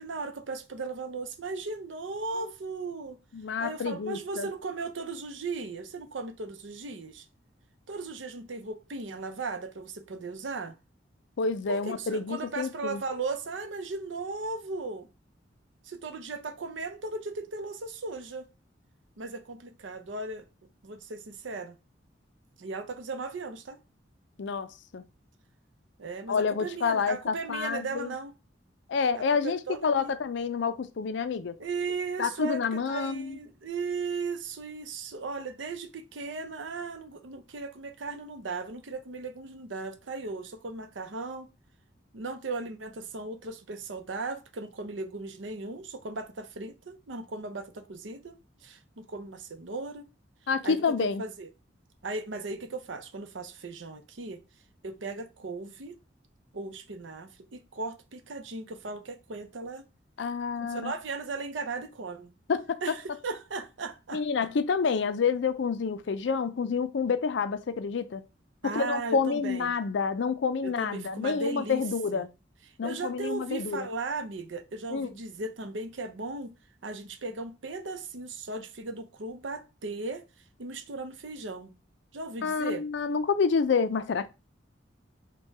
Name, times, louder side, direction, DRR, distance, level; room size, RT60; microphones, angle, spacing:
voice 1, 0.0-3.2 3.6-7.2 7.9-10.8 11.7-15.1 15.8-18.5 19.2-20.5 20.8-21.8 22.6-23.8 26.0-28.3 29.1-30.1 31.6-41.5 42.1-50.0 50.6-51.5 52.0-54.4 54.8-56.0 56.5-59.8 60.6-62.3 62.8-64.2 68.6-69.7 70.6-71.8 72.1-72.2 72.8-76.5 76.8-80.2 80.6-81.7 82.1-82.8, right 3 dB, 85° right, 0.7 m, -37 dB
voice 2, 3.3-4.5 11.4-13.0 24.4-25.0 26.3-28.1 28.9-31.6 32.2-33.4 50.5-51.2 60.2-60.9 62.5-62.8 64.1-68.2 68.6-72.3 72.8-73.9 74.9-75.1 82.4-84.3, left 5 dB, 70° left, 0.4 m, -28 dB
4.4 x 2.3 x 4.5 m
head